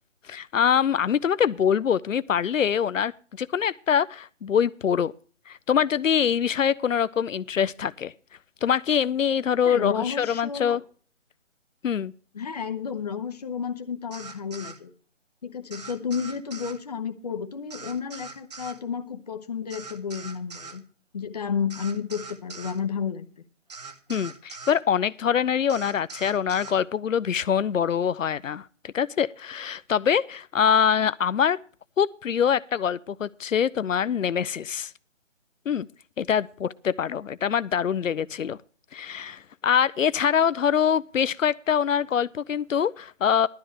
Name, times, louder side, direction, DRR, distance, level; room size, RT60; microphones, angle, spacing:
voice 1, 0.3-3.1 3.4-5.1 5.5-8.1 8.6-10.8 11.8-12.1 24.1-31.6 32.0-34.9 35.7-35.9 36.2-38.6 38.9-43.5, left 8 dB, 85° left, 0.5 m, -24 dB
voice 2, 9.6-10.8 12.3-14.9 15.4-20.8 21.1-23.3, left 6 dB, 30° left, 0.8 m, -31 dB
sound 1, 14.1-14.8 15.7-16.8 17.7-18.8 19.7-20.8 21.7-22.8 23.7-24.8 25.7-26.8, right 4 dB, 35° right, 0.8 m, -42 dB
15.5 x 12.5 x 3.2 m
figure-of-eight pair, 155°, 38 cm